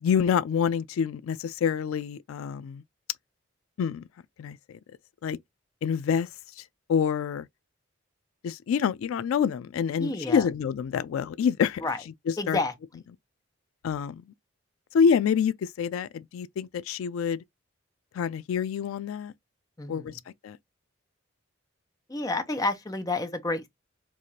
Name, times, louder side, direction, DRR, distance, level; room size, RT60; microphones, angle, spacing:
voice 1, 0.0-2.8 3.8-4.0 4.4-4.6 5.2-5.4 5.8-6.3 6.6-6.7 6.9-7.5 8.4-11.8 12.5-12.6 13.8-14.2 14.9-17.4 18.1-19.3 19.9-20.6, left 7 dB, 85° left, 0.3 m, -27 dB
voice 2, 10.0-10.5 11.8-12.0 12.4-12.7 19.8-20.2 22.1-23.7, left 2 dB, 15° left, 0.6 m, -30 dB
4.7 x 2.4 x 2.7 m
head